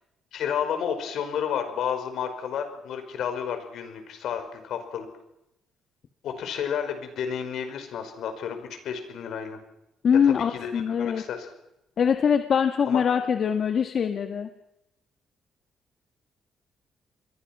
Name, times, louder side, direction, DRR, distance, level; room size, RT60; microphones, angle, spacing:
voice 1, 0.3-5.1 6.2-9.6 10.2-11.5 12.8-13.0, left 8 dB, 75° left, 7 dB, 5.5 m, -31 dB
voice 2, 10.0-11.2 12.0-14.5, left 7 dB, 55° left, 7 dB, 1.6 m, -23 dB
29.0 x 22.5 x 6.1 m, 0.87 s
cardioid pair, 90°, 0 cm